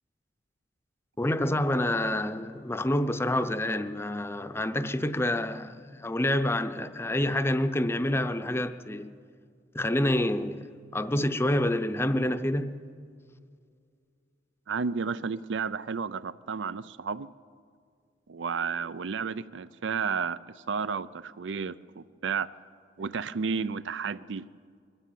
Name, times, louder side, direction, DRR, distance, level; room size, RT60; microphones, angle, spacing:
voice 1, 1.2-9.1 9.7-10.7 10.9-12.7, left 1 dB, 15° left, 0.6 m, -27 dB
voice 2, 14.7-17.3 18.3-20.4 20.7-22.5 23.0-24.4, right 5 dB, 90° right, 0.5 m, -32 dB
21.5 x 13.5 x 9.2 m
head